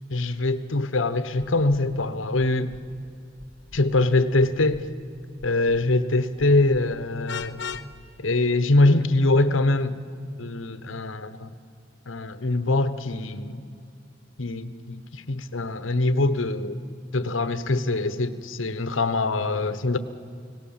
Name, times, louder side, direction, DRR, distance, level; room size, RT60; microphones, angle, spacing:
voice 1, 0.1-2.7 3.7-4.8 5.4-7.6 8.2-10.0 10.4-11.5 12.1-13.6 14.4-16.8 17.1-20.0, left 2 dB, 90° left, 12 dB, 1.1 m, -23 dB
sound 1, 1.4-1.8 2.4-2.8 3.4-3.8 4.4-4.8 5.4-5.8 6.4-6.8 7.4-7.8 8.4-8.5, left 1 dB, 20° right, 2.2 m, -46 dB
Vehicle horn car horn honking, 7.3-7.9, left 7 dB, 65° left, 0.7 m, -33 dB
30.0 x 18.0 x 7.3 m, 2.6 s
head